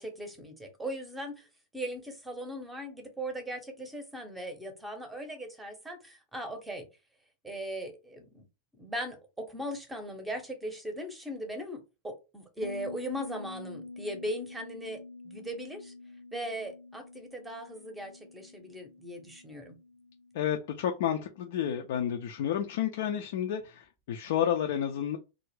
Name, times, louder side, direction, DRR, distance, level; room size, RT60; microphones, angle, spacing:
voice 1, 0.0-1.5 1.7-6.9 7.4-8.4 8.8-15.9 16.3-19.8, equal, 10° right, 5 dB, 0.7 m, -39 dB
Bass guitar, 12.6-22.0, left 3 dB, 85° right, 0.5 m, -47 dB
voice 2, 20.3-25.2, left 9 dB, 55° left, 4 dB, 0.3 m, -30 dB
2.4 x 2.0 x 3.1 m, 0.28 s
figure-of-eight pair, 90°, 0 cm